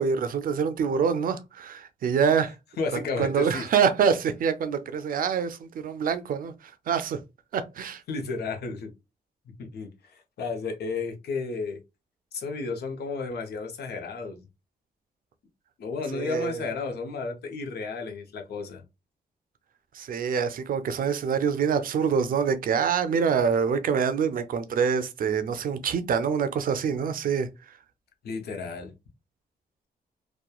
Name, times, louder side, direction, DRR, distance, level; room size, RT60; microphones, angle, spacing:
voice 1, 0.0-2.5 2.9-7.2 7.5-8.0 16.1-16.6 19.9-27.8, right 6 dB, 60° right, 0.4 m, -26 dB
voice 2, 2.8-3.6 8.1-8.9 9.6-11.8 12.3-14.5 15.8-18.8 28.2-28.9, left 4 dB, 85° left, 0.7 m, -32 dB
2.9 x 2.2 x 2.2 m
wide cardioid pair, 135°, 16 cm